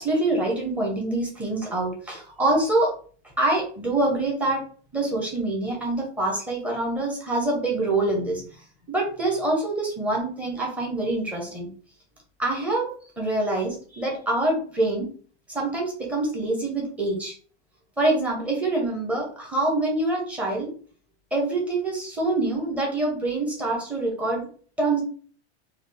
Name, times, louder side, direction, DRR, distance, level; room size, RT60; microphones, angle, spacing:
voice 1, 0.0-2.9 3.4-4.6 4.9-8.5 8.9-11.7 12.4-12.9 13.2-15.1 15.5-17.3 18.0-20.7 21.3-24.5 24.8-25.0, right 2 dB, 5° right, -2 dB, 0.6 m, -25 dB
3.8 x 2.3 x 3.3 m, 0.44 s
supercardioid pair, 170°, 34 cm